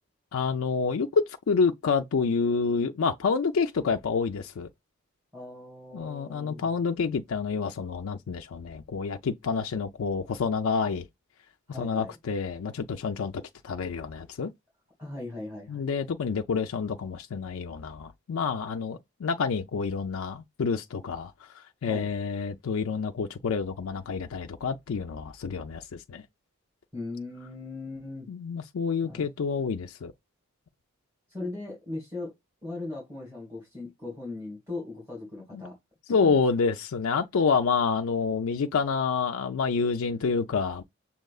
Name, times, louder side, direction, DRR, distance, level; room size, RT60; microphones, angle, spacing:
voice 1, 0.3-4.7 5.9-11.1 11.7-14.5 15.7-26.2 28.3-30.1 35.5-35.6 36.1-40.8, left 5 dB, 75° left, 0.4 m, -28 dB
voice 2, 5.3-6.7 11.7-12.1 15.0-15.9 21.8-22.1 26.9-28.3 29.0-29.2 31.3-32.3 32.6-35.8 36.1-36.4, left 2 dB, 10° right, 2.2 m, -39 dB
6.4 x 2.8 x 2.3 m
head